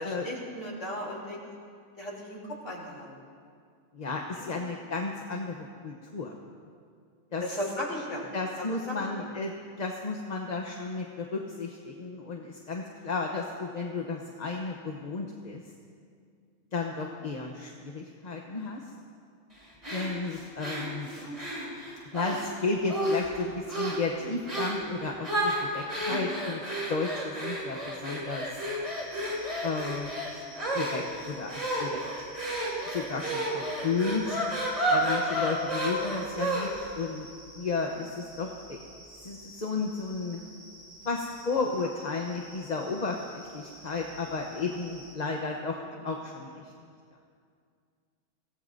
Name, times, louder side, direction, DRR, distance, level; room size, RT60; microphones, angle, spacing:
voice 1, 0.0-1.4 2.0-3.2 4.3-4.6 7.4-8.3 8.6-9.0 17.2-17.3 21.1-21.4 24.2-24.3 25.9-26.2 33.6-33.9 37.8-37.9 40.4-40.5 41.8-41.9 45.8-46.0, left 1 dB, 80° left, -3 dB, 3.6 m, -37 dB
voice 2, 3.9-6.3 7.3-7.4 8.3-9.5 9.8-15.6 16.7-18.8 19.9-21.1 22.1-26.6 26.9-28.7 29.6-30.1 30.7-32.3 32.9-34.4 34.9-37.3 37.5-38.8 39.2-40.4 41.0-46.7, left 4 dB, 40° left, 0 dB, 1.0 m, -33 dB
sound 1, 19.8-22.5 22.9-23.4 23.7-24.1 24.5-24.8 25.2-36.9, right 1 dB, 35° right, 3.6 m, -31 dB
sound 2, 28.8-45.2, right 1 dB, 5° right, 3.1 m, -51 dB
25.0 x 17.5 x 2.7 m, 2.2 s
omnidirectional pair, 1.2 m